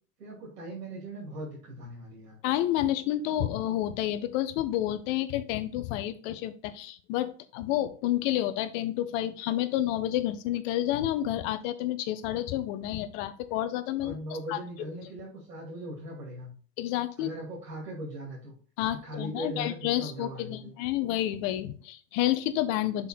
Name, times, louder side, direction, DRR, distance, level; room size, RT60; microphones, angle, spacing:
voice 1, 0.2-2.4 14.0-16.5 17.2-18.5 18.9-20.7, equal, 85° right, -3 dB, 2.7 m, -39 dB
voice 2, 2.4-14.2 14.5-14.6 16.8-17.3 18.8-23.1, left 13 dB, 50° left, 12 dB, 0.9 m, -30 dB
5.7 x 4.0 x 4.3 m, 0.41 s
hypercardioid pair, 105°, 48 cm